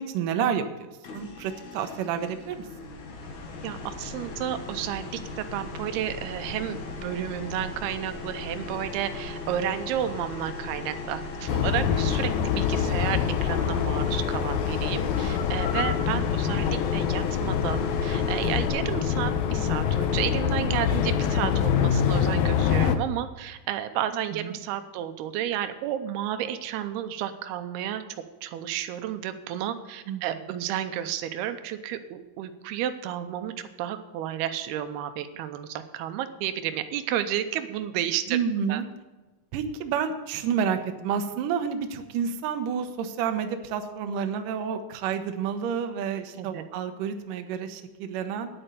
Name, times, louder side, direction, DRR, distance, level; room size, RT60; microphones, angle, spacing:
voice 1, 0.0-2.6 16.2-16.3 24.3-24.5 30.1-30.2 38.3-38.9 39.5-48.5, right 7 dB, 70° right, 6 dB, 2.3 m, -29 dB
sound 1, 1.0-18.7, left 3 dB, 60° left, 2.6 m, -38 dB
voice 2, 3.6-28.0 28.4-33.5 33.8-38.4 38.7-38.8 46.3-46.6, right 11 dB, 90° right, 10 dB, 2.7 m, -32 dB
sound 2, 11.5-23.0, left 8 dB, 75° left, 2.5 m, -25 dB
10.0 x 8.8 x 6.8 m, 1.2 s
omnidirectional pair, 4.4 m